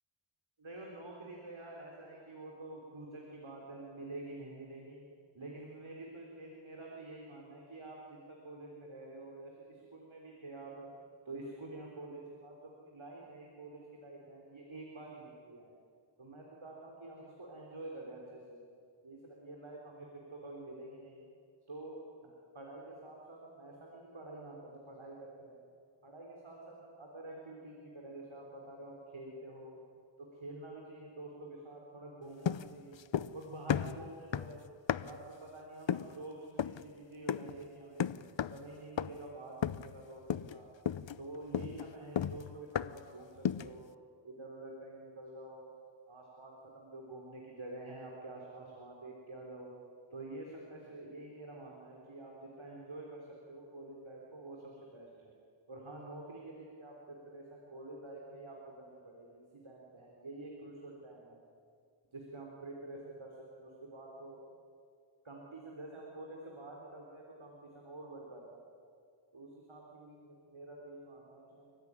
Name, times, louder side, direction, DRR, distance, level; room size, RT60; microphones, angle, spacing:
voice 1, 0.6-5.0 5.3-10.9 11.3-15.7 16.2-18.6 19.0-21.2 21.7-25.7 26.0-29.8 30.2-33.0 33.3-34.6 35.0-38.1 38.4-40.7 41.2-43.9 44.2-45.7 46.1-49.7 50.1-55.3 55.7-61.4 62.1-64.4 65.2-68.6 69.3-71.8, right 2 dB, 70° right, -1 dB, 3.9 m, -48 dB
sound 1, 32.5-33.4 33.7-35.3 35.9-36.2 36.6-36.9 37.3-37.6 38.0-38.7 39.0-39.3 39.6-40.0 40.3-40.6 40.9-43.1 43.5-43.8, left 9 dB, 65° left, 0.7 m, -35 dB
29.5 x 15.5 x 9.7 m, 2.2 s
wide cardioid pair, 50°, 49 cm